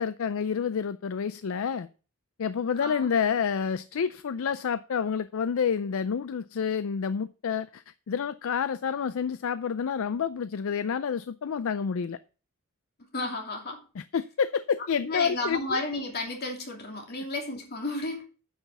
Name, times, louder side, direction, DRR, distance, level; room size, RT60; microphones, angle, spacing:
voice 1, 0.0-1.9 2.4-12.2 14.0-15.8, left 6 dB, 65° left, 0.4 m, -29 dB
voice 2, 2.8-3.1 13.1-13.8 15.0-18.3, left 2 dB, 45° left, 2.7 m, -32 dB
9.7 x 5.7 x 6.0 m
head